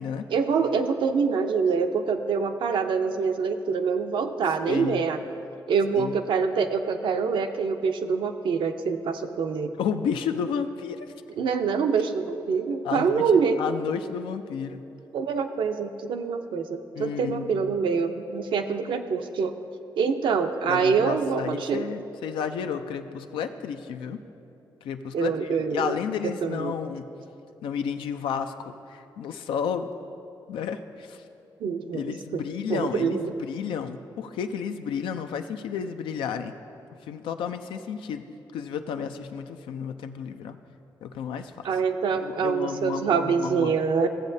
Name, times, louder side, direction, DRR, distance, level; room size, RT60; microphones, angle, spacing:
voice 1, 0.3-5.2 5.7-9.7 11.4-13.6 15.1-19.5 20.0-21.9 25.1-25.9 26.4-26.8 31.6-32.4 32.7-33.3 41.6-44.1, right 5 dB, 75° right, 6 dB, 0.5 m, -25 dB
voice 2, 4.7-5.0 6.0-6.1 9.8-11.1 12.8-13.3 13.6-14.8 17.0-17.5 20.7-24.2 24.8-27.1 27.6-29.9 30.5-31.2 31.9-36.5 37.0-38.3 38.5-40.6 41.0-41.7 42.1-43.8, left 7 dB, 90° left, 8 dB, 0.4 m, -32 dB
15.0 x 7.4 x 2.7 m, 2.8 s
supercardioid pair, 55°, 8 cm